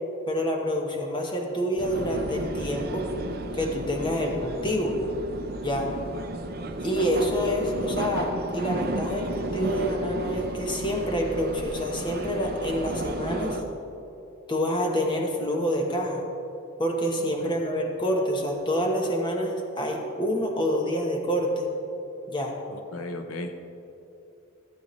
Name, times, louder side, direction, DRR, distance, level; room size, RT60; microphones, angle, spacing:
voice 1, 0.3-3.0 3.5-5.0 5.6-5.9 6.8-13.6 14.5-16.2 16.8-21.7 22.3-22.5, equal, 20° left, 0 dB, 1.0 m, -27 dB
sound 1, 1.8-13.6, right 1 dB, 45° right, 0.6 m, -33 dB
voice 2, 17.2-17.5 22.7-23.6, left 1 dB, 85° left, 6 dB, 0.7 m, -36 dB
15.0 x 8.3 x 3.1 m, 2.8 s
head